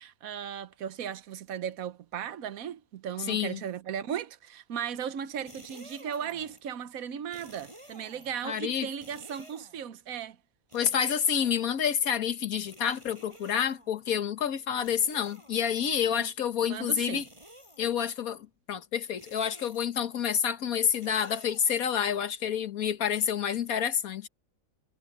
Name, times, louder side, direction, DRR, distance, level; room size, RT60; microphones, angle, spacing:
voice 1, 0.0-10.4 16.2-16.3 16.6-17.2, right 8 dB, 80° right, 1.3 m, -36 dB
voice 2, 3.3-3.6 8.4-8.9 10.7-17.3 17.8-24.3, left 8 dB, 85° left, 1.6 m, -28 dB
sound 1, 5.3-6.7 7.3-8.5 9.0-9.9 10.7-11.9 12.7-14.1 14.8-15.9 17.1-18.1 19.2-20.1 21.0-22.2 23.2-23.3, right 1 dB, 20° right, 6.1 m, -52 dB
omnidirectional pair, 1.5 m